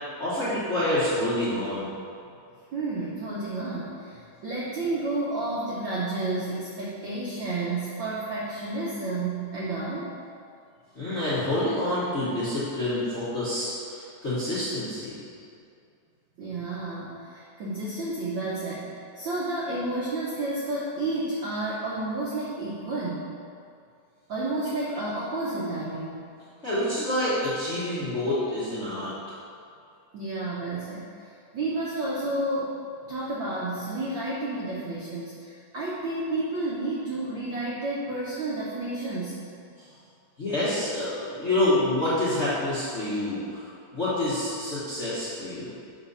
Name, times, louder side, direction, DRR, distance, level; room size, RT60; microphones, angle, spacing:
voice 1, 0.2-1.9 10.9-15.2 26.6-29.1 39.8-39.9 40.4-45.7, left 1 dB, 40° left, -12 dB, 1.0 m, -27 dB
voice 2, 2.7-10.1 16.4-23.3 24.3-26.3 30.1-32.8 33.1-39.4, right 2 dB, 85° right, -6 dB, 1.0 m, -31 dB
7.1 x 4.0 x 5.4 m, 2.4 s
omnidirectional pair, 3.3 m